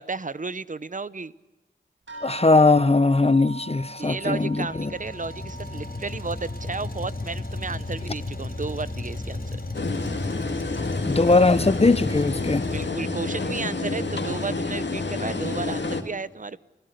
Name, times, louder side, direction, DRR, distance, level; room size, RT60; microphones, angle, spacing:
voice 1, 0.0-1.3 4.0-9.5 12.7-16.6, right 4 dB, 45° right, 0.8 m, -33 dB
sound 1, 2.1-10.9 11.2-12.1 12.8-12.9 13.4-13.5, right 2 dB, 85° right, 8.0 m, -44 dB
voice 2, 2.2-4.9 11.1-12.6, left 3 dB, 35° left, 0.8 m, -20 dB
Truck, 4.1-12.9, left 2 dB, 50° left, 4.6 m, -34 dB
sound 2, 9.7-16.0, left 3 dB, 70° left, 2.2 m, -29 dB
29.5 x 16.5 x 6.6 m
wide cardioid pair, 50°, 19 cm